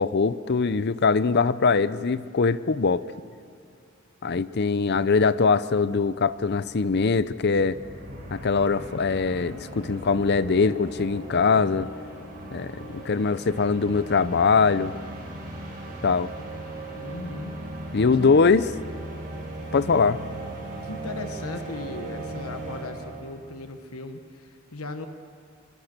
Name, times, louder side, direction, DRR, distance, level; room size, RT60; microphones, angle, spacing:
voice 1, 0.0-3.0 4.2-7.8 8.3-11.9 12.5-14.9 16.0-16.3 17.9-18.7 19.7-20.2, left 4 dB, 50° left, 16 dB, 0.6 m, -22 dB
sound 1, 6.3-23.4, right 1 dB, 40° right, 6.7 m, -38 dB
voice 2, 17.0-17.5 18.2-18.3 20.8-25.1, left 2 dB, 90° left, 7 dB, 1.3 m, -37 dB
24.5 x 23.0 x 6.7 m, 2.3 s
head